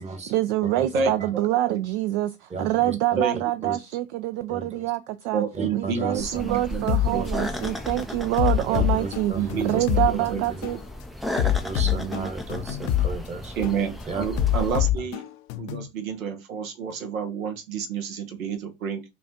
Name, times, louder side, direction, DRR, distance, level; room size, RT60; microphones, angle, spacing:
voice 1, 0.3-5.4 5.7-10.8 11.8-12.3, right 15 dB, 60° right, 0.5 m, -26 dB
voice 2, 0.9-1.8 3.2-3.4 3.6-3.7 5.3-7.3 9.3-10.4 13.5-15.2 15.6-19.0, right 6 dB, 85° right, 1.0 m, -29 dB
voice 3, 5.6-6.6 7.1-7.3 8.7-9.8 11.4-13.5 14.1-14.2, right 3 dB, 15° right, 1.0 m, -33 dB
sound 1, 6.1-14.9, left 1 dB, ahead, 0.3 m, -35 dB
sound 2, 6.9-7.1 7.6-7.8 8.4-10.1 10.6-10.8 11.4-13.1 13.6-13.8 14.4-15.9, left 12 dB, 60° left, 0.7 m, -24 dB
5.2 x 2.3 x 2.7 m
hypercardioid pair, 85°, 40 cm